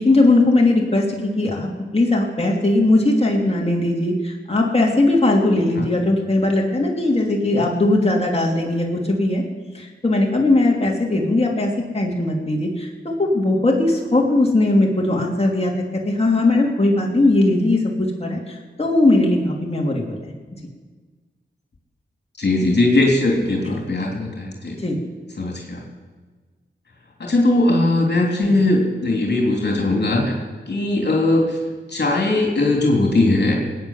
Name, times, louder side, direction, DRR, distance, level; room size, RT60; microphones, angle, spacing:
voice 1, 0.0-1.7 1.9-9.4 9.7-20.3 24.8-25.0, left 2 dB, 30° left, -1 dB, 3.1 m, -19 dB
voice 2, 22.4-24.8 25.4-25.8 27.2-30.4 30.7-31.6 31.9-33.5, left 2 dB, 60° left, 0 dB, 3.1 m, -19 dB
19.0 x 9.4 x 7.3 m, 1.4 s
cardioid pair, 50°, 20 cm